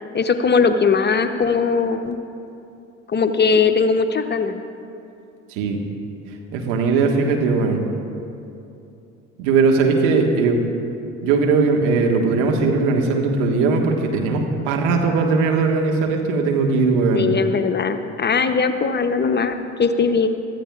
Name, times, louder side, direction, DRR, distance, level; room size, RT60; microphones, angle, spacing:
voice 1, 0.1-2.2 3.1-4.6 17.1-20.3, left 5 dB, 25° left, 8 dB, 0.8 m, -19 dB
voice 2, 6.5-7.8 9.4-10.6 11.2-17.3, right 4 dB, 65° right, 2 dB, 1.7 m, -19 dB
23.5 x 14.0 x 2.5 m, 2.7 s
figure-of-eight pair, 55°, 39 cm